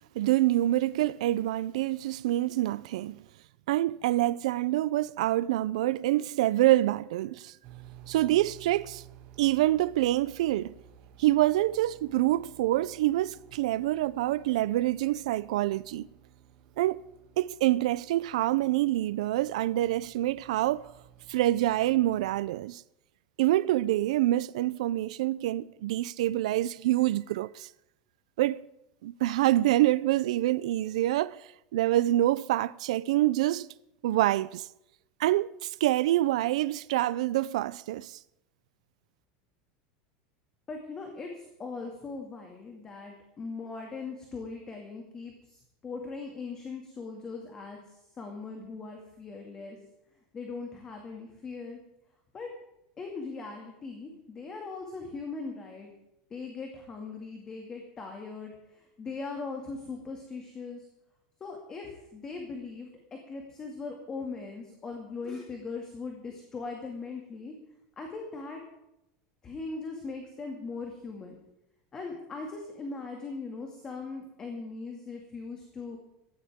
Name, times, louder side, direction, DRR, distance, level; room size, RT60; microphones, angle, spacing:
voice 1, 0.1-3.2 3.7-7.6 8.1-9.0 9.4-10.7 11.2-16.1 16.8-17.0 17.4-20.9 21.3-22.8 23.4-27.7 28.4-28.6 29.0-33.7 34.0-34.7 35.2-38.2, right 15 dB, 85° right, 0.5 m, -26 dB
sound 1, 7.6-22.4, right 10 dB, 40° right, 2.3 m, -54 dB
voice 2, 40.7-47.8 48.2-49.8 50.3-51.8 52.3-52.5 53.0-55.9 56.3-60.9 61.4-67.5 68.0-68.6 69.4-71.3 71.9-76.0, left 4 dB, 20° left, 2.3 m, -40 dB
19.5 x 15.5 x 3.7 m
supercardioid pair, 170°, 3 cm